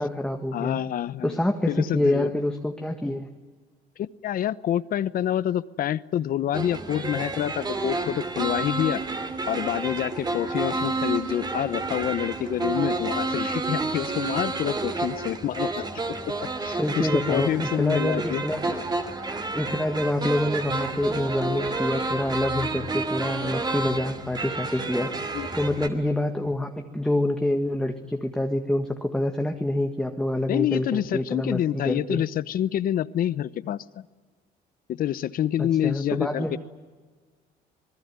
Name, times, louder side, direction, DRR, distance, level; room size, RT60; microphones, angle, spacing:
voice 1, 0.0-0.8 1.2-3.3 16.8-18.8 19.1-32.2 35.6-36.6, left 1 dB, 5° left, 4 dB, 1.8 m, -27 dB
voice 2, 0.5-1.4 1.7-2.3 4.0-9.0 9.5-15.8 16.3-16.4 16.6-18.4 25.3-25.5 30.5-34.1 34.9-36.6, left 11 dB, 60° left, 17 dB, 0.9 m, -27 dB
sound 1, 6.5-25.9, right 3 dB, 25° right, 3.0 m, -30 dB
27.0 x 20.0 x 9.6 m, 1.4 s
cardioid pair, 110°, 17 cm